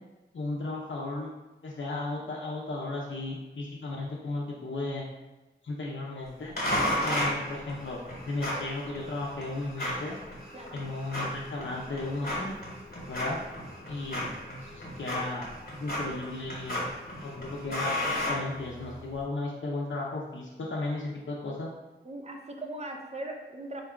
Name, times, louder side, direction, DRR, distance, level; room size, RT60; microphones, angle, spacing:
voice 1, 0.3-1.3 1.6-5.0 5.6-6.5 7.0-10.2 10.7-12.6 13.1-13.4 13.9-14.3 14.6-16.9 17.1-21.7, left 2 dB, 80° left, -4 dB, 0.5 m, -35 dB
sound 1, 6.6-19.1, left 1 dB, 50° left, 1.1 m, -34 dB
voice 2, 22.0-23.8, right 1 dB, 35° right, 2 dB, 0.5 m, -39 dB
3.8 x 2.2 x 3.6 m, 1.1 s
wide cardioid pair, 65°, 19 cm